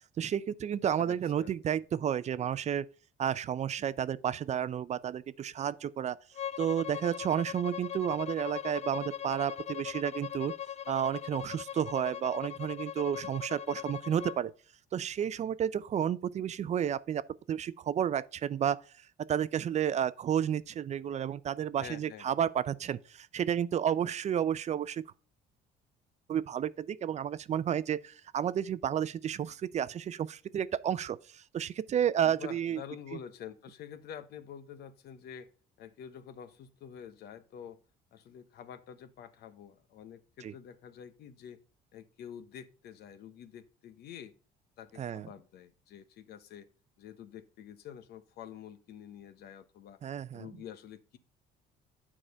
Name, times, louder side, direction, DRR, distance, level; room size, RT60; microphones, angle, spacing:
voice 1, 0.2-2.9 3.2-6.2 6.6-10.5 10.9-14.5 14.9-17.2 17.5-18.8 19.3-25.0 26.3-32.8 40.4-40.5 45.0-45.3 50.0-50.5, right 9 dB, 40° right, 0.5 m, -31 dB
voice 2, 0.8-1.8 21.8-22.3 32.2-35.5 35.8-37.8 38.1-41.6 41.9-44.3 44.8-46.7 47.0-50.0 50.3-51.2, left 9 dB, 70° left, 1.0 m, -48 dB
Bowed string instrument, 6.3-14.4, left 10 dB, 40° left, 0.4 m, -40 dB
8.9 x 4.9 x 5.5 m
cardioid pair, 110°, 17 cm